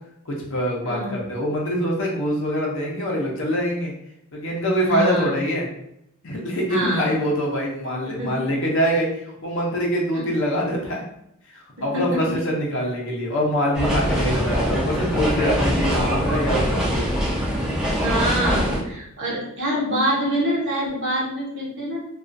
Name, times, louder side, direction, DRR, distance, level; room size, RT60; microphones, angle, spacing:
voice 1, 0.3-3.9 4.3-5.7 6.2-9.1 9.4-11.0 11.8-17.1, equal, 60° left, -2 dB, 0.7 m, -24 dB
voice 2, 0.8-1.2 4.9-5.3 6.7-7.1 8.2-8.5 10.1-10.2 11.9-12.4 15.6-15.7 18.0-22.0, equal, 55° right, -5 dB, 1.0 m, -25 dB
sound 1, 13.7-18.8, equal, 5° right, 0.4 m, -23 dB
2.3 x 2.3 x 2.5 m, 0.78 s
head